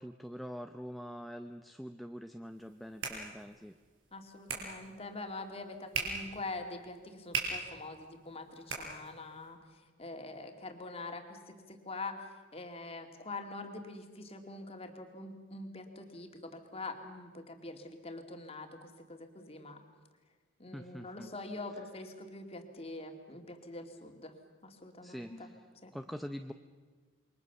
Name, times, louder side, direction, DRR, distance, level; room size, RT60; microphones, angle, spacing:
voice 1, 0.0-3.8 20.7-21.3 25.0-25.6 25.9-26.5, equal, ahead, 7 dB, 0.6 m, -44 dB
sound 1, 2.5-9.5, right 4 dB, 80° right, 5.8 m, -42 dB
voice 2, 4.1-19.8 20.6-24.3 24.6-25.5 25.8-25.9, left 2 dB, 30° left, 5 dB, 2.5 m, -44 dB
28.0 x 23.0 x 7.0 m, 1.4 s
head